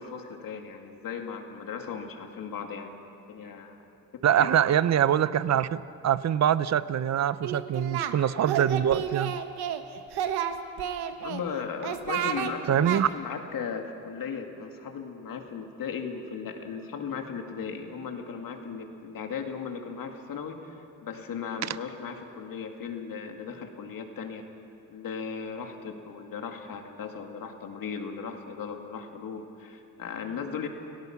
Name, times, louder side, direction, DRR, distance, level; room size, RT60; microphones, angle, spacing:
voice 1, 0.0-2.9 3.3-3.8 4.4-4.5 11.2-24.5 24.9-30.7, left 6 dB, 60° left, 4 dB, 2.5 m, -37 dB
voice 2, 4.2-9.4 12.7-13.1, right 10 dB, 45° right, 16 dB, 0.7 m, -24 dB
Singing, 7.4-8.1 8.4-9.8 10.1-11.4 11.8-12.5 12.8-13.0, right 9 dB, 85° right, 1.3 m, -30 dB
30.0 x 18.0 x 6.0 m, 2.7 s
cardioid pair, 100°, 38 cm